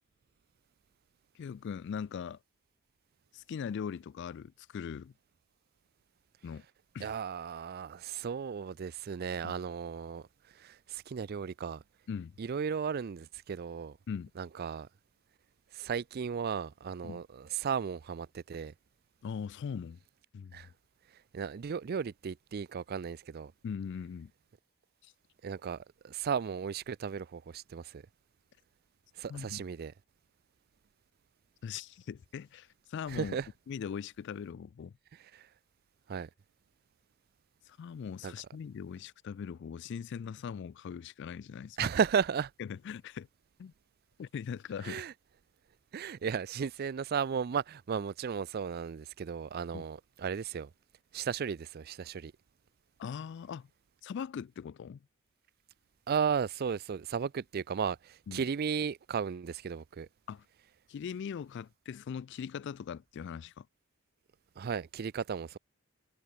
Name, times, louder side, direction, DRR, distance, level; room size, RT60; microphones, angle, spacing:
voice 1, 1.3-2.4 3.3-5.1 6.4-6.6 6.9-7.1 9.4-9.5 12.1-12.4 14.1-14.3 17.0-17.2 19.2-20.0 20.3-20.6 23.6-24.3 25.0-25.1 29.3-29.6 31.6-33.4 33.7-34.9 37.7-41.9 42.6-43.3 43.6-43.7 44.2-45.0 49.7-49.8 53.0-53.7 54.0-55.0 58.3-58.4 60.3-60.4 60.9-63.7, left 7 dB, 55° left, 0.3 m, -40 dB
voice 2, 7.0-10.3 10.5-11.8 12.4-14.0 14.4-14.9 15.7-18.7 20.5-20.7 21.3-23.5 25.4-28.0 29.2-29.9 33.1-33.5 35.1-35.5 36.1-36.3 38.2-38.3 41.8-42.5 44.8-45.1 45.9-50.7 51.1-52.3 56.1-60.1 64.6-65.6, right 6 dB, 45° right, 0.4 m, -35 dB
head